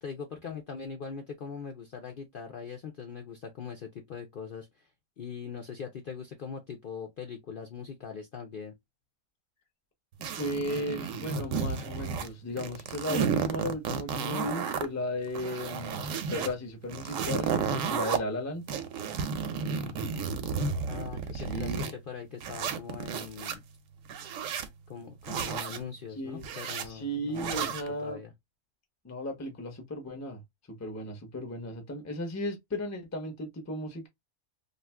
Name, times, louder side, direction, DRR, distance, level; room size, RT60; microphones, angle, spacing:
voice 1, 0.0-4.9 5.2-8.7 19.8-20.3 20.9-23.6 24.9-27.7 28.0-28.3, left 6 dB, 70° left, 0.5 m, -41 dB
sound 1, 10.2-12.3 12.6-14.9 15.3-16.5 16.9-18.2 18.7-21.9 22.4-23.6 24.1-24.7 25.2-25.8 26.4-26.9 27.4-27.9, right 6 dB, 70° right, 0.9 m, -32 dB
voice 2, 10.4-18.6 21.3-21.9 26.2-26.4 26.8-28.2 29.0-30.4 30.7-34.1, left 1 dB, 20° left, 0.5 m, -35 dB
2.7 x 2.4 x 3.2 m
omnidirectional pair, 1.6 m